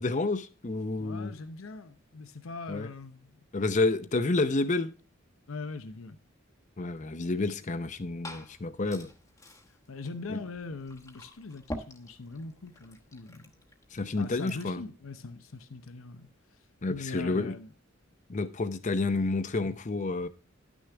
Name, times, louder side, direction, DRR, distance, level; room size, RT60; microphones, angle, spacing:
voice 1, 0.0-1.3 2.7-2.9 3.5-4.9 6.8-9.1 10.3-10.4 13.9-14.8 16.8-17.5 18.3-20.3, left 3 dB, 35° left, 0.6 m, -29 dB
voice 2, 1.0-3.4 5.5-6.2 9.9-13.5 14.0-16.3 16.9-17.7, left 3 dB, 85° left, 0.8 m, -41 dB
Glass / Fill (with liquid), 7.7-14.8, left 1 dB, 15° left, 1.0 m, -47 dB
11.5 x 6.3 x 3.4 m
head